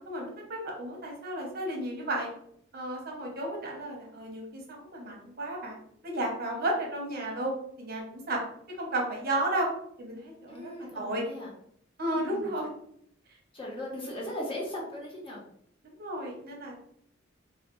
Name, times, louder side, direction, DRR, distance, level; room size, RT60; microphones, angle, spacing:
voice 1, 0.1-2.3 2.7-5.8 6.0-7.5 7.8-8.4 8.8-9.7 10.0-11.2 12.0-12.7 15.8-16.8, right 1 dB, 50° right, 0 dB, 0.9 m, -33 dB
voice 2, 10.5-11.5 12.1-12.5 13.5-15.4, left 1 dB, 25° left, -3 dB, 0.9 m, -38 dB
3.2 x 2.2 x 3.0 m, 0.68 s
head